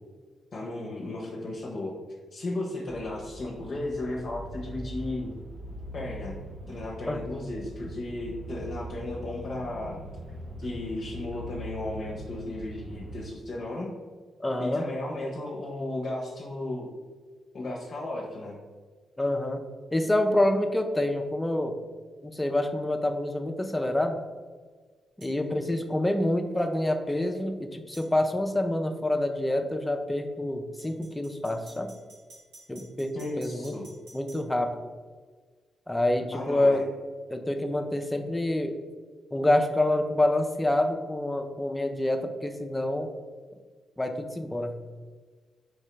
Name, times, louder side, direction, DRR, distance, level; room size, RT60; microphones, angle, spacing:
voice 1, 0.5-1.9 2.3-5.3 5.9-6.4 6.7-10.0 10.6-13.9 14.6-16.9 17.5-18.6 33.1-33.9 36.3-36.8, left 2 dB, 55° left, -3 dB, 0.7 m, -34 dB
sound 1, 2.9-13.1, right 1 dB, 60° right, 0.9 m, -41 dB
voice 2, 14.4-14.8 19.2-19.6 19.9-21.8 22.2-24.2 25.2-31.9 32.7-33.8 34.1-34.8 35.9-36.9 37.3-38.8 39.3-43.1 44.0-44.8, left 1 dB, 15° left, 6 dB, 0.5 m, -27 dB
sound 2, 25.2-25.4 27.9-28.1 30.8-34.4, right 2 dB, 85° right, 1.2 m, -51 dB
4.5 x 2.8 x 3.2 m, 1.5 s
hypercardioid pair, 40°, 0 cm